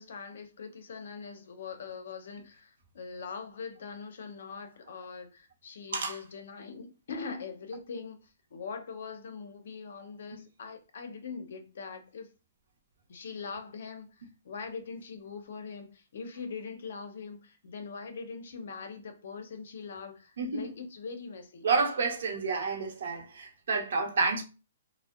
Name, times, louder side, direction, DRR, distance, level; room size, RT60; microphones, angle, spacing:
voice 1, 0.0-12.3 13.1-21.7, left 5 dB, 60° left, 0.5 m, -42 dB
voice 2, 20.4-20.7 21.6-24.4, right 4 dB, 60° right, 0.6 m, -29 dB
2.6 x 2.0 x 2.3 m
hypercardioid pair, 175°, 0 cm